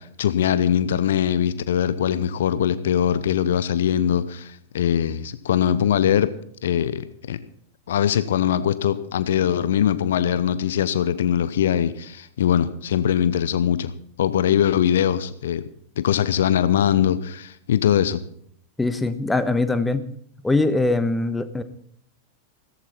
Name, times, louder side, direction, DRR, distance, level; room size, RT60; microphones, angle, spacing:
voice 1, 0.0-6.3 6.6-7.4 7.9-13.9 14.2-15.6 16.0-18.2, left 9 dB, 60° left, 15 dB, 0.8 m, -21 dB
voice 2, 18.8-20.0 20.4-21.6, left 2 dB, 10° left, 11 dB, 1.3 m, -22 dB
16.0 x 14.5 x 4.4 m, 0.67 s
figure-of-eight pair, 90°, 0 cm